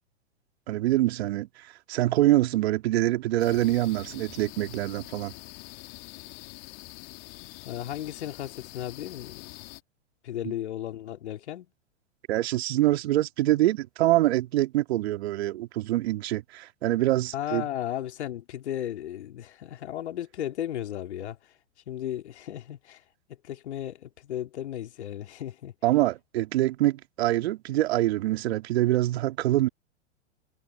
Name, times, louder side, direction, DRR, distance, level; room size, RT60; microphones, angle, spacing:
voice 1, 0.7-5.3 12.3-17.6 25.8-29.7, right 15 dB, 55° right, 2.6 m, -25 dB
sound 1, 3.4-9.8, left 35 dB, 45° left, 2.7 m, -45 dB
voice 2, 7.6-9.6 10.2-11.7 17.3-21.5 21.9-25.7, left 11 dB, 65° left, 3.4 m, -35 dB
figure-of-eight pair, 105°, 36 cm